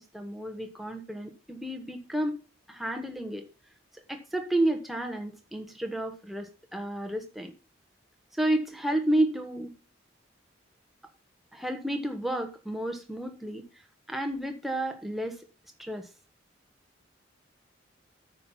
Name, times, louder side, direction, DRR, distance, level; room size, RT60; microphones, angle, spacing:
voice 1, 0.0-2.4 2.7-3.4 4.1-7.5 8.3-9.7 11.5-13.6 14.1-15.4 15.8-16.1, right 1 dB, ahead, 4 dB, 1.4 m, -31 dB
9.0 x 6.0 x 5.5 m, 0.33 s
head